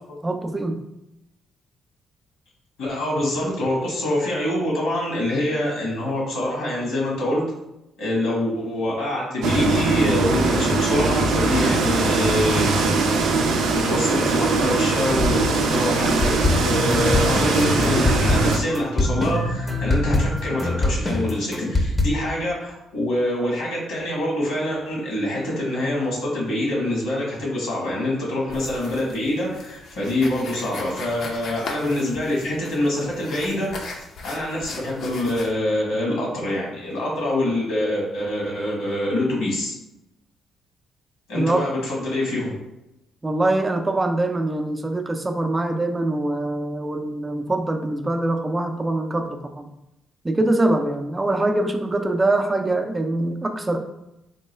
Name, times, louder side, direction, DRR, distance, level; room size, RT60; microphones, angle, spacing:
voice 1, 0.2-0.8 41.3-41.7 43.2-49.7 50.2-53.8, right 2 dB, 20° right, 6 dB, 0.4 m, -23 dB
voice 2, 2.8-7.4 8.0-12.7 13.7-33.9 34.2-39.7 41.3-42.5, left 1 dB, 90° left, -4 dB, 1.4 m, -25 dB
sound 1, 9.4-18.6, right 3 dB, 80° right, 0.4 m, -21 dB
sound 2, 16.2-22.0, left 2 dB, 20° left, 0.6 m, -23 dB
sound 3, 28.5-35.5, left 3 dB, 65° left, 0.5 m, -38 dB
3.7 x 2.3 x 3.2 m, 0.90 s
cardioid pair, 90°, 0 cm